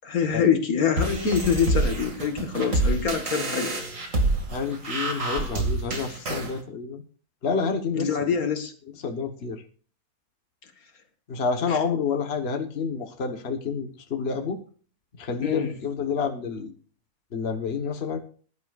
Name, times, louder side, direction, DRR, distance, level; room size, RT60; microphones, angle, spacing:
voice 1, 0.0-3.8 7.9-8.7 11.7-11.8 15.4-15.7, left 6 dB, 70° left, 7 dB, 2.0 m, -25 dB
sound 1, 1.0-6.5, right 2 dB, 55° right, 2.7 m, -27 dB
voice 2, 4.5-7.0 7.4-8.3 9.0-9.6 11.3-14.6 15.2-16.7 17.3-18.2, left 5 dB, 45° left, 5 dB, 1.5 m, -29 dB
20.5 x 11.0 x 2.5 m, 0.39 s
omnidirectional pair, 1.6 m